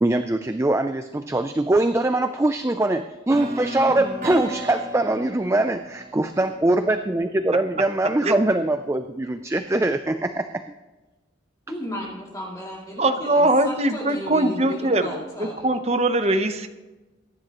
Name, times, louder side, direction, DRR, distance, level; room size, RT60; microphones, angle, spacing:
voice 1, 0.0-10.6, right 2 dB, 15° right, 0.3 m, -22 dB
sound 1, 3.3-7.3, right 1 dB, 50° right, 3.7 m, -35 dB
voice 2, 11.7-15.7, equal, 15° left, 2.6 m, -34 dB
voice 3, 13.0-15.1 15.4-16.7, right 1 dB, 30° right, 0.8 m, -21 dB
23.5 x 10.5 x 3.0 m
head